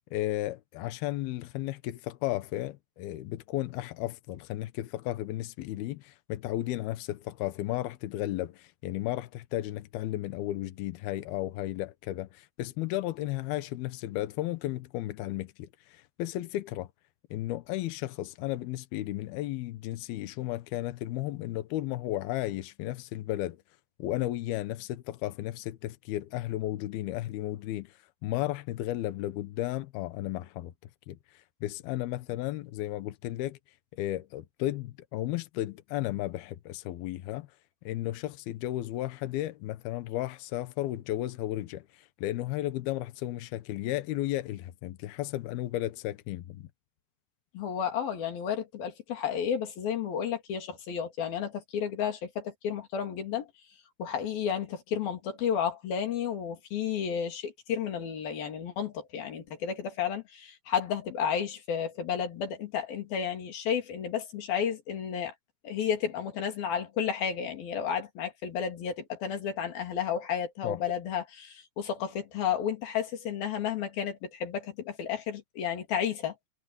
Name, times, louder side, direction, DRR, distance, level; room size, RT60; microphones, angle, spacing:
voice 1, 0.1-16.9 17.3-23.6 24.0-30.7 31.1-33.6 33.9-37.5 37.8-46.7 70.6-70.8, left 15 dB, 80° left, 2.2 m, -34 dB
voice 2, 47.5-53.5 54.0-65.3 65.6-76.3, left 8 dB, 50° left, 4.5 m, -32 dB
omnidirectional pair, 5.9 m